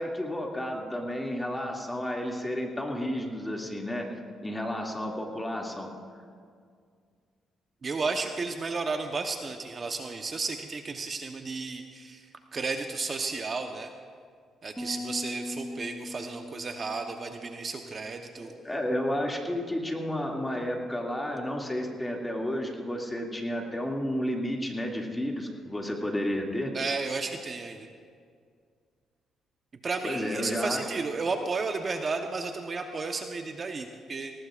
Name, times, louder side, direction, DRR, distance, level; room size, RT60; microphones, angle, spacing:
voice 1, 0.0-4.1 4.4-5.9 18.4-26.7 30.0-30.8, equal, 10° left, 0 dB, 2.3 m, -31 dB
voice 2, 7.8-13.9 14.6-18.5 26.7-27.9 29.8-34.3, right 4 dB, 40° right, 4 dB, 0.9 m, -33 dB
sound 1, 14.8-18.2, left 1 dB, 10° right, 1.4 m, -40 dB
19.0 x 19.0 x 2.5 m, 2.1 s
cardioid pair, 90°, 0 cm